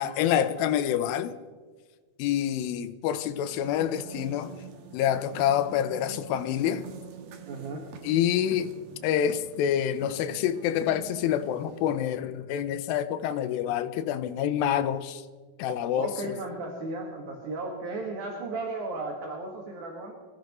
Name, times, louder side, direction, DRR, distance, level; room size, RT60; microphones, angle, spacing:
voice 1, 0.0-1.3 2.2-4.5 4.9-6.8 8.0-8.7 9.0-15.2 15.6-16.4, left 10 dB, 80° left, 2.4 m, -27 dB
sound 1, 3.2-12.1, right 6 dB, 80° right, 3.0 m, -45 dB
voice 2, 7.5-7.9 15.9-20.1, right 3 dB, 60° right, 3.0 m, -35 dB
25.5 x 14.5 x 3.1 m
omnidirectional pair, 4.2 m